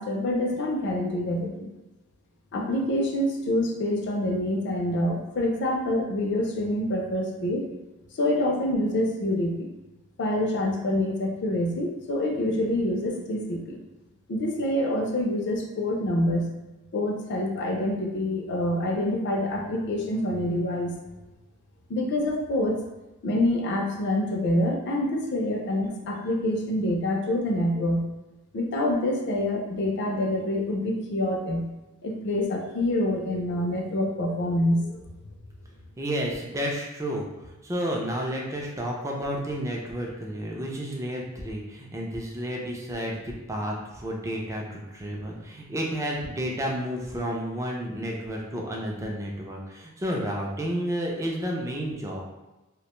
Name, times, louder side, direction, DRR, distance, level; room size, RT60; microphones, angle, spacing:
voice 1, 0.0-1.7 2.5-7.7 8.1-9.7 10.2-13.8 14.3-16.5 16.9-20.9 21.9-22.8 23.2-28.0 28.5-31.7 32.0-34.9, left 1 dB, 50° left, 1 dB, 0.4 m, -26 dB
voice 2, 36.0-52.2, equal, 15° right, -1 dB, 0.3 m, -31 dB
2.4 x 2.1 x 2.9 m, 1.0 s
head